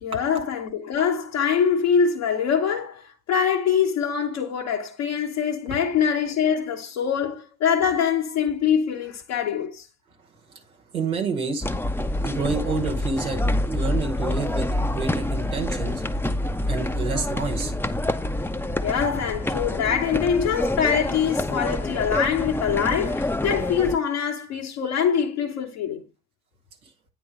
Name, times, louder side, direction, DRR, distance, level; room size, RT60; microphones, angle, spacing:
voice 1, 0.0-9.9 18.2-18.3 18.8-26.0, left 7 dB, 70° left, 1.1 m, -24 dB
voice 2, 10.9-11.7 12.2-16.0 16.7-17.7, right 4 dB, 90° right, 1.2 m, -28 dB
sound 1, 11.6-24.0, left 1 dB, 5° left, 0.6 m, -27 dB
9.3 x 3.9 x 4.8 m
figure-of-eight pair, 40°, 42 cm